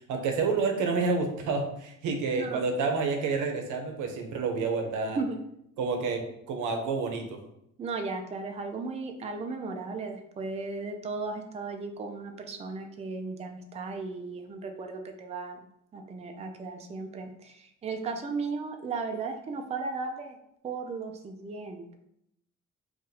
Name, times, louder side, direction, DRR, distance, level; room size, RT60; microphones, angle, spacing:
voice 1, 0.1-5.2 5.8-7.4, right 4 dB, 85° right, 4 dB, 0.7 m, -29 dB
voice 2, 7.8-15.6 15.9-20.4 20.6-22.0, right 4 dB, 20° right, 5 dB, 0.4 m, -35 dB
2.6 x 2.5 x 4.0 m, 0.76 s
cardioid pair, 90°, 30 cm